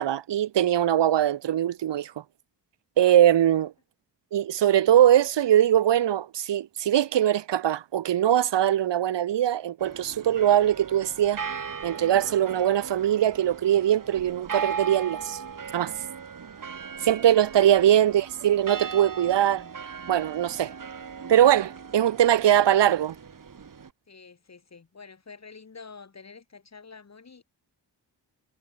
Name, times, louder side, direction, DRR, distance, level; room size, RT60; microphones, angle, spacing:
voice 1, 0.0-2.1 3.0-3.7 4.3-11.4 11.8-15.4 15.7-15.9 17.0-19.6 20.1-20.7 21.3-23.1, right 11 dB, 75° right, 0.9 m, -21 dB
sound 1, 9.8-23.9, right 6 dB, 50° right, 3.0 m, -38 dB
voice 2, 24.1-27.4, left 5 dB, 40° left, 2.6 m, -48 dB
wide cardioid pair, 145°, 42 cm